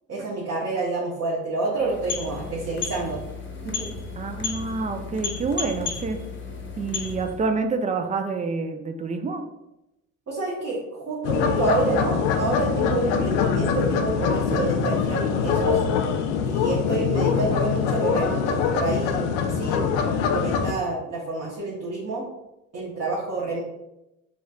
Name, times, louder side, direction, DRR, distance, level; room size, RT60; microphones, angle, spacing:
voice 1, 0.1-3.2 3.6-3.9 10.3-15.8 16.4-22.3 22.7-23.6, right 3 dB, 40° right, -5 dB, 1.0 m, -28 dB
sound 1, 1.7-7.5, left 5 dB, 30° left, 0.9 m, -33 dB
voice 2, 4.2-6.2 6.7-9.4, right 4 dB, 20° right, 6 dB, 0.3 m, -27 dB
sound 2, 11.2-20.7, left 6 dB, 75° left, 0.5 m, -23 dB
3.1 x 3.0 x 2.4 m, 0.92 s
hypercardioid pair, 55°, 39 cm